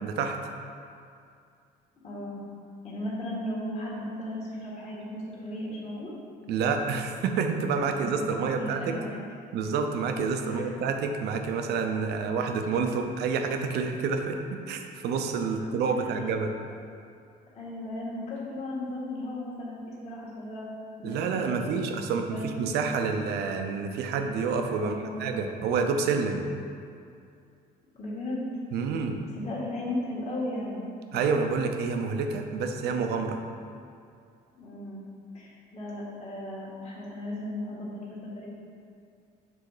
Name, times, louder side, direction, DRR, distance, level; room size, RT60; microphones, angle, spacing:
voice 1, 0.0-0.4 6.5-8.9 9.5-14.4 14.7-16.5 21.0-24.9 25.2-26.4 28.7-29.2 31.1-33.4, right 5 dB, 75° right, 5 dB, 0.6 m, -28 dB
voice 2, 2.0-2.4 2.8-6.1 7.7-8.2 8.6-9.2 10.4-10.8 16.0-16.2 17.5-20.7 21.0-21.7 22.3-22.7 24.8-25.2 27.9-28.5 29.3-30.8 34.6-35.0 35.3-38.5, left 1 dB, 40° left, -7 dB, 1.5 m, -36 dB
6.9 x 3.5 x 4.9 m, 2.4 s
cardioid pair, 110°, 17 cm